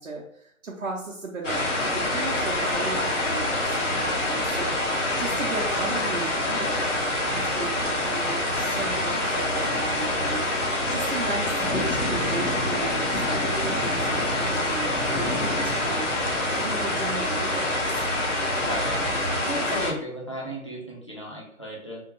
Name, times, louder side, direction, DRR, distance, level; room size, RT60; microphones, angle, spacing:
voice 1, 0.0-18.1 19.7-19.8, right 3 dB, 60° right, -4 dB, 0.8 m, -36 dB
sound 1, 1.4-19.9, left 1 dB, 60° left, 1.0 m, -26 dB
voice 2, 18.6-19.1 19.5-22.0, right 1 dB, 20° left, -5 dB, 0.6 m, -34 dB
3.5 x 2.4 x 2.9 m, 0.68 s
figure-of-eight pair, 150°, 42 cm